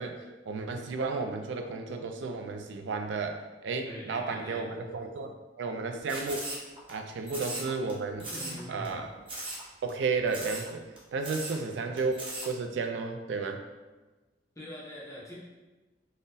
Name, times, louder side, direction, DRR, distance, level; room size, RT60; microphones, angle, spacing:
voice 1, 0.0-6.5 6.9-8.3 8.7-9.1 9.8-13.6, right 4 dB, 85° right, 5 dB, 0.3 m, -33 dB
voice 2, 3.9-4.7 7.2-7.3 8.3-9.1 11.5-11.7 14.6-15.3, left 1 dB, 20° left, -7 dB, 0.6 m, -43 dB
sound 1, 6.1-6.9 7.3-7.9 8.2-8.6 8.8-8.9 9.3-9.6 9.9-10.0 10.3-10.7 11.0-11.1 11.2-11.6 12.0-12.5, right 2 dB, 30° right, 0.7 m, -38 dB
3.7 x 2.1 x 2.6 m, 1.2 s
head